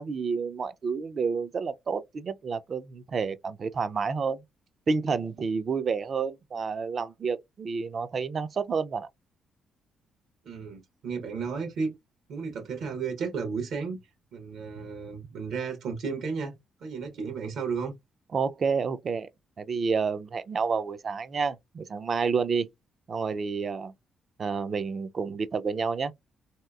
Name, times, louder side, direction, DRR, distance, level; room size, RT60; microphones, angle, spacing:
voice 1, 0.0-4.4 4.9-9.1 18.3-19.3 19.6-22.7 23.1-23.9 24.4-26.1, right 5 dB, 45° right, 0.4 m, -29 dB
voice 2, 10.4-11.9 12.3-14.0 14.3-17.9, right 5 dB, 75° right, 0.9 m, -33 dB
3.2 x 2.8 x 2.3 m
cardioid pair, 90°, 0 cm